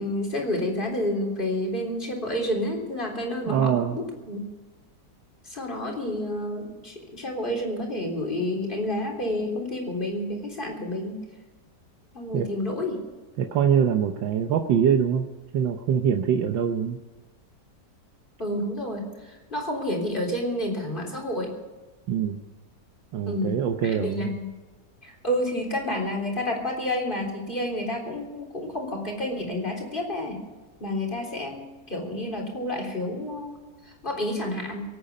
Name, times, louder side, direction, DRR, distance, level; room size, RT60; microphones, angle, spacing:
voice 1, 0.0-4.4 5.5-11.2 12.1-13.0 18.4-21.5 23.3-24.5 25.0-30.4 30.8-33.6 33.8-34.8, left 1 dB, 25° left, 0 dB, 3.8 m, -30 dB
voice 2, 3.5-4.0 12.3-12.5 13.4-15.3 15.5-17.0 22.1-22.4 23.1-24.4, right 8 dB, 85° right, 4 dB, 1.6 m, -24 dB
24.5 x 8.9 x 5.4 m, 1.3 s
omnidirectional pair, 2.0 m